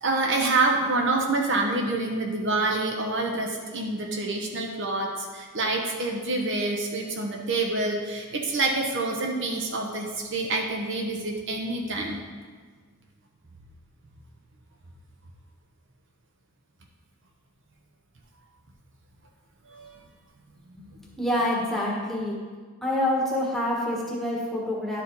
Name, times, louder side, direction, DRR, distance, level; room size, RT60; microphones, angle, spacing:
voice 1, 0.0-12.2 19.7-19.9 20.6-21.5, right 2 dB, 55° right, 1 dB, 0.9 m, -27 dB
voice 2, 20.8-22.4 22.8-25.0, left 1 dB, ahead, -4 dB, 1.3 m, -27 dB
11.0 x 5.0 x 3.9 m, 1.5 s
head